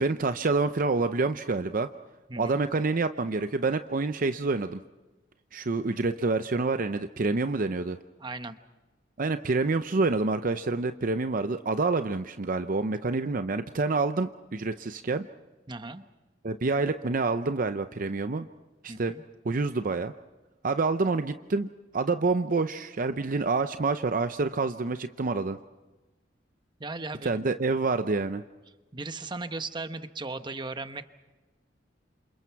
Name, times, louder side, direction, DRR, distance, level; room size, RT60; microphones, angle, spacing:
voice 1, 0.0-1.9 2.4-4.8 5.5-8.0 9.2-15.3 16.4-18.5 18.8-19.1 19.4-20.1 20.6-21.7 21.9-25.6 27.2-28.4, right 3 dB, 50° right, 9 dB, 0.6 m, -27 dB
voice 2, 8.2-8.6 15.7-16.0 18.9-19.2 26.8-27.4 28.9-31.1, right 3 dB, 25° right, 10 dB, 1.0 m, -37 dB
28.5 x 27.5 x 4.6 m, 1.2 s
head